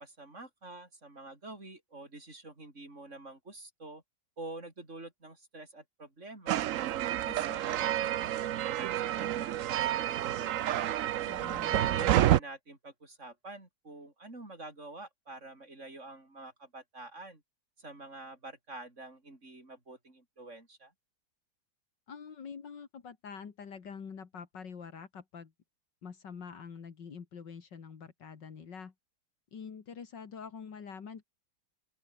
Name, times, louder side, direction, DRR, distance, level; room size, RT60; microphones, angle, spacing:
voice 1, 0.0-4.0 4.4-6.6 7.2-11.0 11.7-17.4 17.8-20.9, right 2 dB, 40° right, 6.2 m, -47 dB
sound 1, 6.5-12.4, right 12 dB, 65° right, 0.8 m, -29 dB
voice 2, 11.3-12.1 22.1-25.5 26.0-28.9 29.5-31.2, left 6 dB, 75° left, 2.7 m, -46 dB
open air
omnidirectional pair, 1.9 m